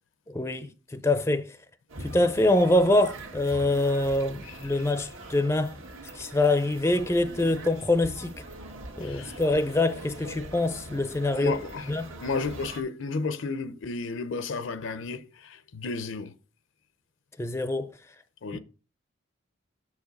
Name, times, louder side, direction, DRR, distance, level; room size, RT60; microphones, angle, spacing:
voice 1, 0.3-1.5 2.0-5.7 6.2-8.3 9.0-11.6 11.9-12.1 17.4-17.9, left 2 dB, 15° left, 0.4 m, -25 dB
sound 1, 1.9-12.8, right 2 dB, 80° right, 1.6 m, -43 dB
voice 2, 4.4-4.9 9.0-9.6 11.3-11.9 12.2-16.4 18.4-18.6, left 4 dB, 70° left, 0.6 m, -33 dB
6.7 x 4.8 x 5.2 m
head